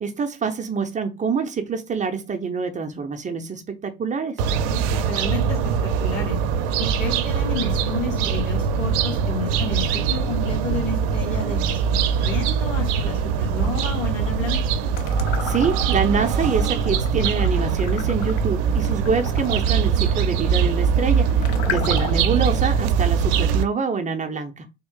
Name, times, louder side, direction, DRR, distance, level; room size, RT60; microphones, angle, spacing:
voice 1, 0.0-4.4 15.4-24.7, right 5 dB, 20° right, 0.6 m, -26 dB
sound 1, 4.4-23.6, right 6 dB, 65° right, 0.6 m, -22 dB
voice 2, 4.6-6.4 6.8-14.6, left 3 dB, 90° left, 1.7 m, -31 dB
sound 2, 14.9-16.0 16.4-22.4, left 9 dB, 60° left, 0.8 m, -35 dB
3.5 x 2.4 x 3.6 m
hypercardioid pair, 80°, 38 cm